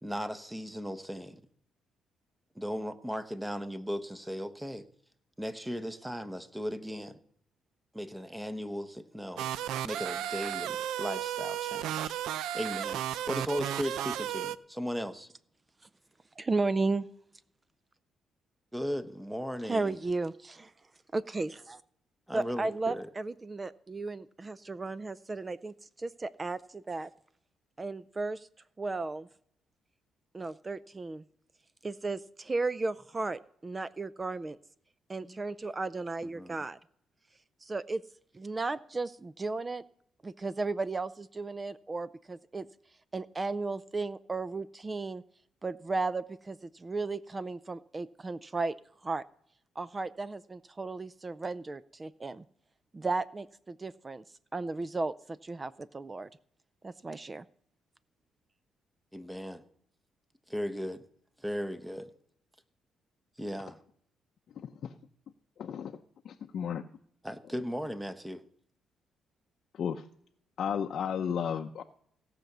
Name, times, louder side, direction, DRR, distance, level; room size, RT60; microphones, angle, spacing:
voice 1, 0.0-1.4 2.5-4.8 5.4-7.2 7.9-9.5 9.8-12.1 12.5-15.3 18.7-20.0 22.3-23.1 35.2-35.4 36.2-36.6 59.1-59.6 60.5-61.0 61.4-62.1 63.4-63.7 67.2-68.4, equal, 5° right, 1.0 m, -37 dB
sound 1, 9.4-14.6, right 11 dB, 85° right, 0.4 m, -34 dB
voice 2, 16.4-17.1 19.7-20.7 21.1-21.8 22.3-27.1 27.8-28.5 28.8-29.3 30.3-31.2 31.8-34.6 35.1-36.8 37.6-38.0 38.3-39.8 40.2-42.7 43.1-45.2 45.6-48.7 49.0-49.2 49.8-52.4 52.9-54.2 54.5-56.3 56.8-57.4, right 3 dB, 25° right, 0.4 m, -34 dB
voice 3, 65.6-65.9 66.2-66.9 69.8-70.0 70.6-71.8, left 8 dB, 60° left, 0.6 m, -33 dB
17.0 x 5.9 x 6.7 m
cardioid pair, 90°, 0 cm